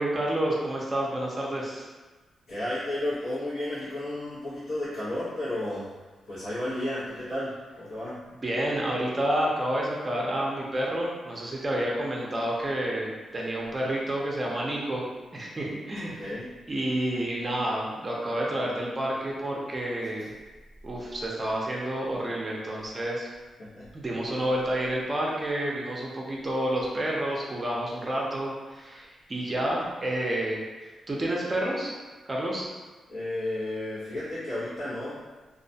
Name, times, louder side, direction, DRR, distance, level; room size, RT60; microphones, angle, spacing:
voice 1, 0.0-1.8 8.4-15.1 15.3-16.3 16.7-20.3 20.8-23.3 23.9-31.9 32.3-32.7, right 1 dB, 30° right, -3 dB, 0.5 m, -29 dB
voice 2, 2.5-5.9 6.3-8.2 16.0-16.5 23.6-23.9 33.1-35.2, left 1 dB, 85° left, -15 dB, 0.9 m, -33 dB
2.3 x 2.1 x 2.6 m, 1.3 s
cardioid pair, 90°, 0 cm